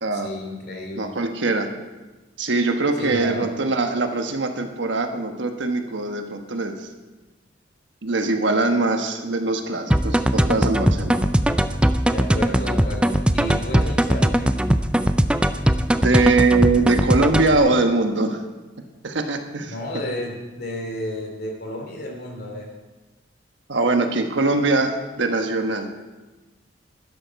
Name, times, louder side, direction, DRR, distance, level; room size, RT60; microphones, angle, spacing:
voice 1, 0.1-1.1 3.0-3.5 12.1-14.6 19.7-22.7, left 1 dB, 55° left, 1 dB, 2.7 m, -32 dB
voice 2, 1.0-1.7 2.4-6.9 8.0-11.2 16.0-18.4 19.0-19.7 23.7-25.9, right 3 dB, 75° right, 5 dB, 1.2 m, -22 dB
sound 1, 9.9-17.6, right 1 dB, 5° right, 0.4 m, -20 dB
12.5 x 11.0 x 4.7 m, 1.2 s
head